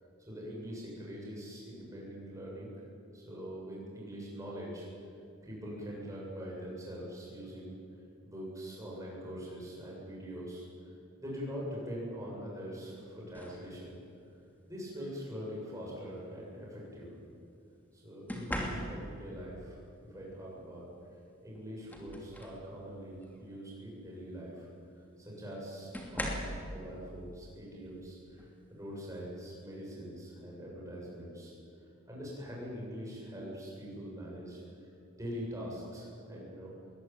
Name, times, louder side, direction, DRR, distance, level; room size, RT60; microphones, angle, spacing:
voice 1, 0.2-2.7 3.1-4.9 5.4-7.7 8.2-10.7 11.2-14.0 14.7-17.2 17.9-19.8 20.1-20.8 21.4-24.7 25.2-31.5 32.1-34.6 35.2-36.7, equal, 15° right, -4 dB, 7.8 m, -43 dB
sound 1, 13.3-13.7 15.0-15.2 18.3-19.3 21.0-21.1 21.6-22.7 23.1-23.4 24.8-24.9 25.9-26.7 28.4-28.6 29.0-29.4, equal, 10° left, 2.8 m, -39 dB
21.5 x 20.0 x 9.3 m, 2.4 s
head